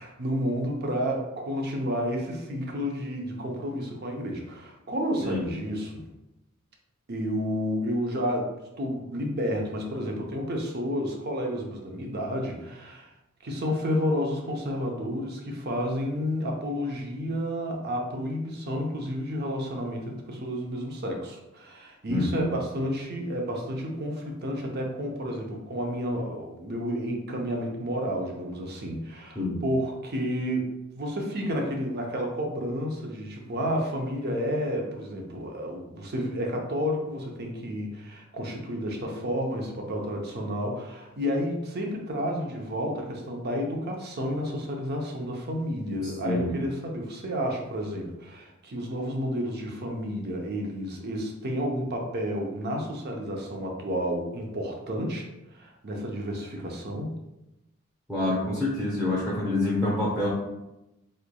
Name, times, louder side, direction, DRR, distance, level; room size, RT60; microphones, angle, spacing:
voice 1, 0.0-6.0 7.1-13.1 13.4-57.1, equal, 50° right, 1 dB, 0.7 m, -31 dB
voice 2, 22.1-22.5 29.3-29.6 46.2-46.5 58.1-60.3, left 2 dB, 5° right, -7 dB, 0.8 m, -27 dB
3.8 x 3.2 x 2.2 m, 0.94 s
head